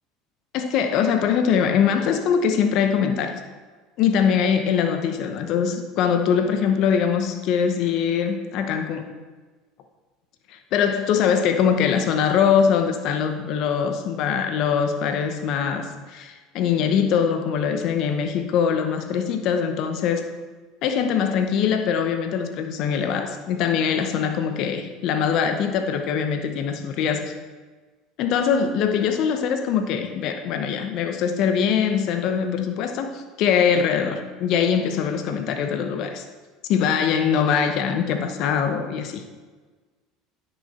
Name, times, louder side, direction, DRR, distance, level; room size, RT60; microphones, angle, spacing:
voice 1, 0.5-3.4 4.0-9.0 10.5-20.3 20.8-27.3 28.2-36.2 36.7-39.2, left 7 dB, 60° left, 6 dB, 0.9 m, -22 dB
9.7 x 6.5 x 4.3 m, 1.3 s
hypercardioid pair, 85°, 0 cm